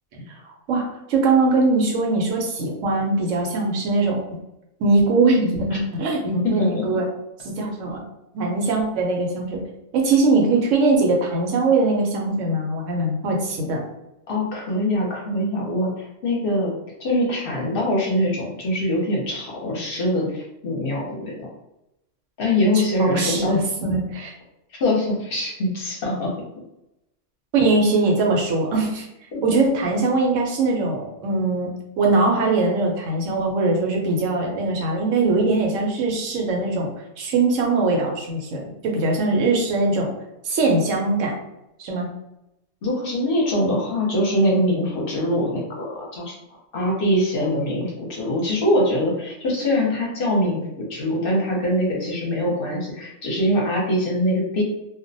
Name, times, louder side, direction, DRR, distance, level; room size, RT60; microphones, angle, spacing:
voice 1, 0.7-4.2 4.8-7.0 7.4-8.0 8.3-9.6 9.9-13.8 23.0-24.3 27.5-29.1 29.4-31.7 32.0-36.9 37.2-40.1 40.4-41.4 41.8-42.1, right 3 dB, 90° right, 0 dB, 1.0 m, -21 dB
voice 2, 6.4-7.0 14.3-16.7 17.0-21.5 22.4-23.6 24.8-26.3 29.3-29.4 42.8-46.3 46.7-54.6, left 1 dB, 55° left, -2 dB, 0.7 m, -23 dB
2.4 x 2.0 x 2.6 m, 0.87 s
omnidirectional pair, 1.3 m